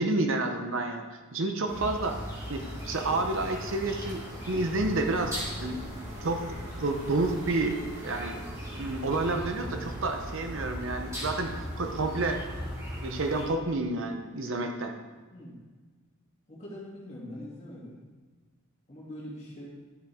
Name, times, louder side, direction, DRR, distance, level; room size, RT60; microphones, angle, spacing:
voice 1, 0.0-2.2 2.5-6.4 6.8-7.8 8.0-8.4 8.7-12.4 13.0-14.9, right 2 dB, 60° right, 5 dB, 0.8 m, -30 dB
sound 1, 1.7-13.5, equal, 15° right, 2.4 m, -39 dB
sound 2, 2.0-12.6, equal, 35° right, 2.8 m, -45 dB
voice 2, 16.5-18.0 18.9-19.7, left 1 dB, 30° left, -6 dB, 2.7 m, -43 dB
10.5 x 7.4 x 3.6 m, 1.4 s
head